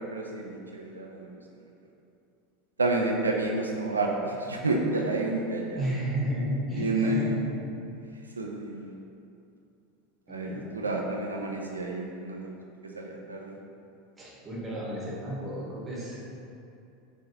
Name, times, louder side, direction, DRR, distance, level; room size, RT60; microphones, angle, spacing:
voice 1, 0.0-1.4 2.8-5.8 6.8-7.2 8.4-8.9 10.3-12.5 12.9-13.6, right 2 dB, 85° right, 0 dB, 0.4 m, -30 dB
voice 2, 5.8-7.3 10.3-10.9 14.2-16.2, right 1 dB, 20° right, -6 dB, 1.1 m, -32 dB
4.0 x 2.9 x 2.7 m, 2.6 s
figure-of-eight pair, 80°, 0 cm